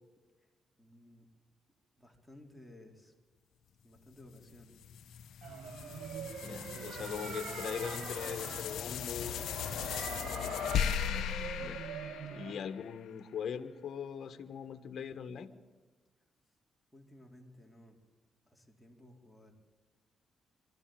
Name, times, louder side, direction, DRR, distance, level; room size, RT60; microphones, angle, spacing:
voice 1, 0.8-1.3 2.0-3.1 3.8-4.8 10.2-10.5 16.9-18.0 18.5-19.5, left 1 dB, 5° left, 0 dB, 4.0 m, -57 dB
sound 1, 4.3-12.9, left 10 dB, 85° left, 0.8 m, -38 dB
sound 2, 5.4-12.5, right 8 dB, 75° right, 1.3 m, -44 dB
voice 2, 6.4-9.3 11.6-11.8 12.3-15.5, left 7 dB, 65° left, 11 dB, 1.3 m, -41 dB
23.5 x 13.5 x 9.0 m, 1.3 s
cardioid pair, 75°, 0 cm